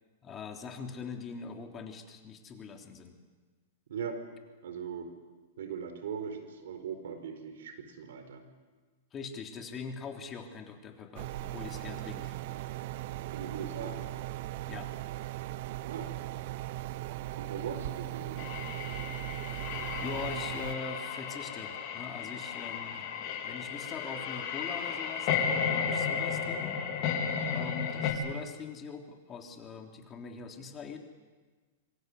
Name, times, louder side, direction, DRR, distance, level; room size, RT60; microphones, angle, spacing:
voice 1, 0.2-3.2 9.1-12.3 14.7-14.9 20.0-23.1 23.4-26.8 27.5-31.0, left 5 dB, 25° left, 3 dB, 3.5 m, -42 dB
voice 2, 4.6-5.1 5.6-8.4 13.3-14.0 15.9-16.1 17.4-18.6, right 7 dB, 75° right, 8 dB, 4.7 m, -39 dB
sound 1, 11.2-20.8, right 16 dB, 55° right, 0.9 m, -38 dB
sound 2, 18.4-28.1, left 7 dB, 50° left, 4.6 m, -34 dB
25.5 x 24.5 x 8.3 m, 1.4 s
hypercardioid pair, 125°, 0 cm